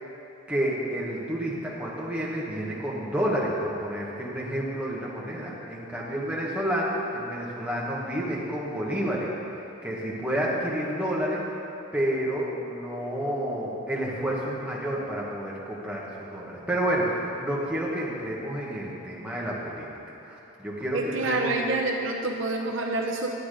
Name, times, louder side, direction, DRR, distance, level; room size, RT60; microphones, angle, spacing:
voice 1, 0.5-9.3 9.8-11.4 11.9-19.9 20.2-21.6, right 1 dB, 5° right, -6 dB, 1.4 m, -30 dB
voice 2, 20.9-23.3, right 2 dB, 60° right, 2 dB, 0.7 m, -27 dB
9.9 x 8.5 x 5.0 m, 2.8 s
head